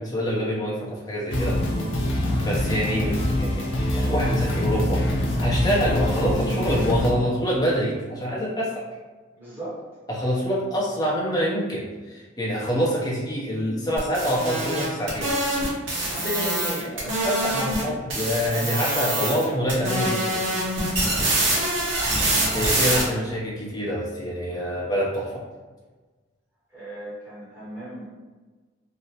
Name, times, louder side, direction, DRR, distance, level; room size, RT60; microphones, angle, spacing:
voice 1, 0.0-1.6 2.4-5.0 5.4-8.8 10.1-15.3 16.2-20.4 22.5-25.3, equal, 20° left, -6 dB, 0.6 m, -26 dB
sound 1, 1.3-7.1, left 1 dB, 85° left, 0.6 m, -24 dB
voice 2, 9.4-9.8 16.0-16.2 22.0-23.2 26.7-28.1, right 1 dB, 10° right, -11 dB, 0.9 m, -38 dB
sound 2, 14.0-17.8 18.1-19.4 19.7-23.0, right 1 dB, 85° right, 0.8 m, -25 dB
2.8 x 2.1 x 2.8 m, 1.3 s
head